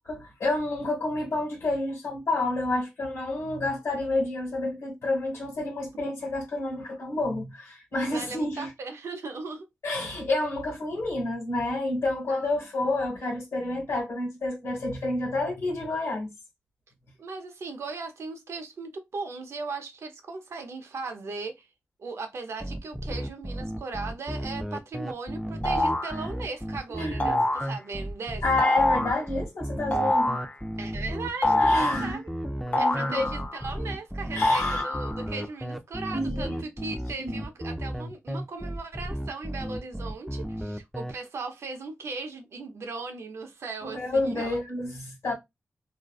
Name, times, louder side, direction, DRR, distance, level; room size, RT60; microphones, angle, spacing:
voice 1, 0.1-8.7 9.8-16.3 26.9-27.4 28.4-30.4 31.6-33.3 34.3-34.8 36.1-36.6 37.2-37.4 43.8-45.3, left 2 dB, 75° left, 1.1 m, -29 dB
voice 2, 8.1-9.7 12.3-12.4 17.2-21.7 22.0-28.4 30.8-32.2 32.8-44.6, right 4 dB, 75° right, 0.6 m, -38 dB
sound 1, 22.6-41.1, equal, ahead, 0.4 m, -34 dB
sound 2, 25.6-26.2 27.2-27.7 28.6-29.2 29.9-30.5 31.4-32.1 32.7-33.7 34.4-35.2, left 1 dB, 30° left, 0.7 m, -25 dB
2.5 x 2.2 x 2.3 m
cardioid pair, 55°, 5 cm